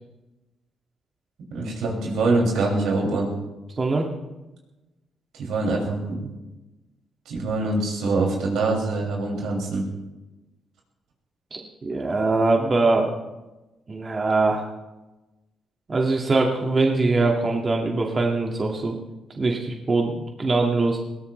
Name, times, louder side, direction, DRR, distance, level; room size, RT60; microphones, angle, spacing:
voice 1, 1.5-3.3 5.3-6.3 7.2-9.9, right 2 dB, 85° right, -1 dB, 6.2 m, -24 dB
voice 2, 3.8-4.1 11.5-13.2 13.9-14.7 15.9-19.0 19.4-21.0, right 3 dB, 35° right, 0 dB, 2.1 m, -22 dB
21.5 x 18.5 x 3.3 m, 1.1 s
cardioid pair, 100°, 0 cm